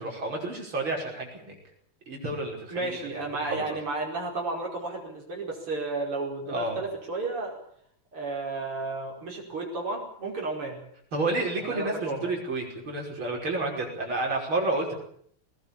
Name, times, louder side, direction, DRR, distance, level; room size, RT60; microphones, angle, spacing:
voice 1, 0.0-1.6 2.1-3.1 3.4-3.6 6.5-6.8 11.1-14.9, right 2 dB, 70° right, 0 dB, 6.5 m, -30 dB
voice 2, 2.7-7.6 8.1-10.8 11.7-12.3, right 3 dB, 85° right, -2 dB, 6.1 m, -32 dB
20.5 x 20.0 x 8.6 m, 0.65 s
omnidirectional pair, 2.4 m